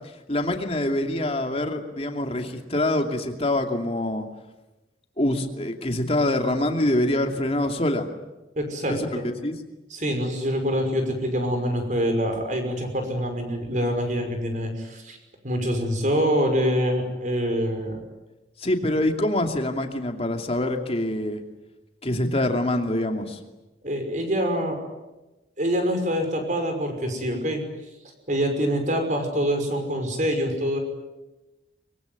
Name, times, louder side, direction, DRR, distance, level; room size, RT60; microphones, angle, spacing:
voice 1, 0.3-4.3 5.2-8.1 8.9-9.6 18.6-21.4 22.0-23.4, left 1 dB, 35° left, 4 dB, 2.6 m, -25 dB
voice 2, 8.6-9.3 9.9-15.2 15.4-18.0 23.8-24.8 25.6-27.6 28.3-30.8, equal, 40° right, 5 dB, 5.8 m, -25 dB
24.0 x 23.5 x 9.5 m, 1.1 s
head